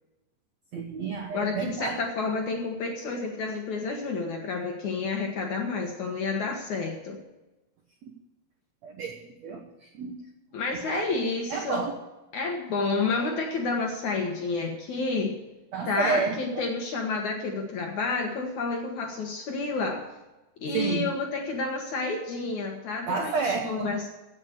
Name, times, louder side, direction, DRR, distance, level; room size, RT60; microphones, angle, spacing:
voice 1, 0.7-2.0 8.8-9.1 9.4-10.1 10.9-11.1 11.5-12.0 15.7-16.7 20.7-21.1 23.1-23.9, right 5 dB, 85° right, 3 dB, 1.5 m, -30 dB
voice 2, 1.3-7.2 10.5-11.9 12.3-15.4 15.9-20.1 20.6-24.1, left 3 dB, 60° left, 2 dB, 2.1 m, -30 dB
15.5 x 7.8 x 6.7 m, 1.1 s
omnidirectional pair, 5.0 m